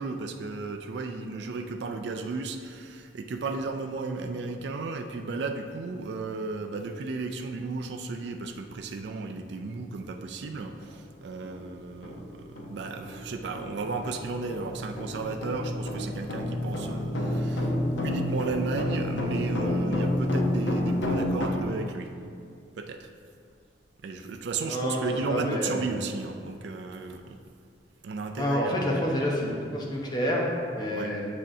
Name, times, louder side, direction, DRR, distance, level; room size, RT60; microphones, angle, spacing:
voice 1, 0.0-17.7 18.0-22.1 22.8-23.1 24.0-27.4 28.0-29.0 30.9-31.1, right 3 dB, 70° right, 5 dB, 0.4 m, -34 dB
sound 1, 10.8-10.9 11.4-11.6 12.0-21.5, left 1 dB, 85° left, 0.8 m, -30 dB
voice 2, 24.7-25.8 28.4-31.3, equal, 25° left, -2 dB, 0.9 m, -28 dB
7.4 x 6.3 x 2.7 m, 2.3 s
head